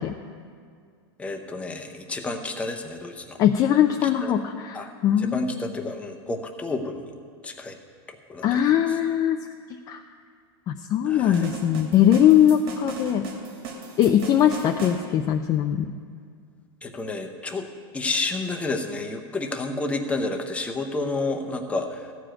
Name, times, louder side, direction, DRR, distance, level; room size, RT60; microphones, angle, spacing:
voice 1, 1.2-3.4 4.0-4.4 4.7-4.9 5.2-7.1 7.4-7.8 8.1-8.6 8.9-9.0 11.1-11.5 16.8-17.7 17.9-22.1, left 2 dB, 10° left, 4 dB, 0.8 m, -30 dB
voice 2, 3.4-5.4 8.4-9.4 9.9-10.0 10.7-13.3 14.0-15.9, left 10 dB, 30° left, 5 dB, 0.4 m, -21 dB
sound 1, 11.3-15.0, right 4 dB, 65° right, 2.2 m, -37 dB
14.5 x 4.8 x 9.0 m, 2.1 s
supercardioid pair, 140°, 13 cm